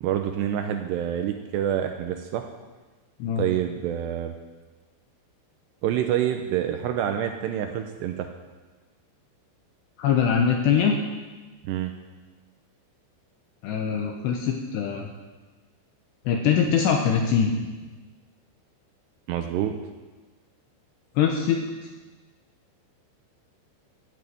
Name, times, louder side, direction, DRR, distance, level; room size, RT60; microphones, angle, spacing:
voice 1, 0.0-2.4 3.4-4.3 5.8-8.3 11.6-11.9 19.3-19.7, right 10 dB, 80° right, 6 dB, 2.6 m, -27 dB
voice 2, 10.0-11.0 13.6-15.1 16.3-17.6 21.2-21.9, left 7 dB, 75° left, 2 dB, 2.8 m, -23 dB
14.5 x 8.3 x 9.2 m, 1.3 s
omnidirectional pair, 5.6 m